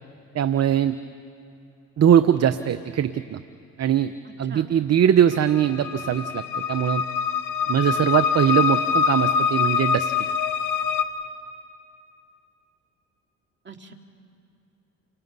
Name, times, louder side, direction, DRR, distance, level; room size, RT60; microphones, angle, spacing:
voice 1, 0.3-1.0 2.0-3.4 3.8-4.1 4.4-6.4 6.7-7.0 7.7-10.1, right 9 dB, 50° right, 12 dB, 0.9 m, -21 dB
voice 2, 4.2-4.7 13.6-13.9, right 5 dB, 35° right, 4 dB, 2.6 m, -42 dB
sound 1, 5.3-11.0, left 7 dB, 70° left, 1.6 m, -24 dB
29.5 x 24.5 x 5.5 m, 2.6 s
supercardioid pair, 70°, 34 cm